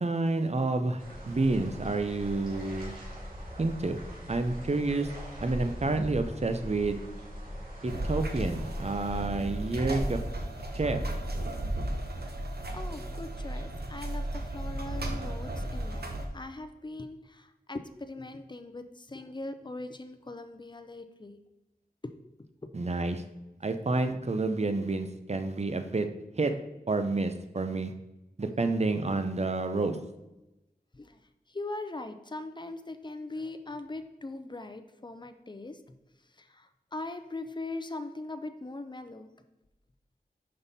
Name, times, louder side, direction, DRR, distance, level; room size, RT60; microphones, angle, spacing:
voice 1, 0.0-2.9 3.6-4.0 4.3-5.1 5.4-7.0 7.8-10.2 10.7-11.0 22.7-23.2 23.6-26.1 26.3-26.5 26.9-27.9 28.4-30.0, right 3 dB, 40° right, 8 dB, 0.6 m, -29 dB
sound 1, 1.0-9.2, equal, 60° right, 2.4 m, -40 dB
sound 2, 7.9-16.3, right 1 dB, 80° right, 0.9 m, -34 dB
voice 2, 12.7-21.4 22.0-22.1 22.6-22.7 30.9-31.2 31.5-35.8 36.4-39.3, left 2 dB, 30° left, 8 dB, 0.6 m, -40 dB
5.7 x 5.4 x 4.1 m, 0.98 s
wide cardioid pair, 55°, 16 cm